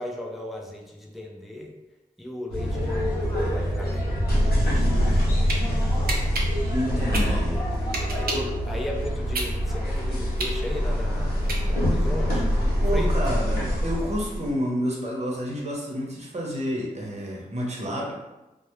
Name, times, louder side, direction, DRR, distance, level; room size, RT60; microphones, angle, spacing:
voice 1, 0.0-1.7 2.2-6.1 8.1-8.3 8.7-12.5 12.9-13.1, left 1 dB, ahead, 0 dB, 0.4 m, -37 dB
sound 1, 2.5-14.5, equal, 85° left, 0.7 m, -24 dB
sound 2, 5.0-5.6 6.1-8.6 9.0-12.0, right 2 dB, 75° right, 0.4 m, -31 dB
voice 2, 6.7-7.6 8.3-8.5 12.8-18.1, equal, 45° right, -3 dB, 0.8 m, -29 dB
2.2 x 2.0 x 3.0 m, 1.0 s
cardioid pair, 50°, 16 cm